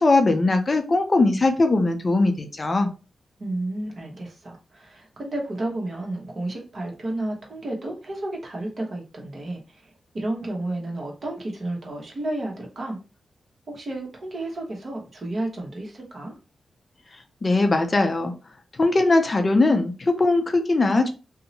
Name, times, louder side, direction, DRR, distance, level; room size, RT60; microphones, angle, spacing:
voice 1, 0.0-2.9 17.4-18.3 18.8-21.1, left 2 dB, 35° left, 6 dB, 0.5 m, -20 dB
voice 2, 3.4-9.8 10.1-13.0 13.7-16.3, right 1 dB, 50° right, 0 dB, 1.0 m, -32 dB
2.7 x 2.0 x 2.7 m, 0.31 s
cardioid pair, 85°, 0 cm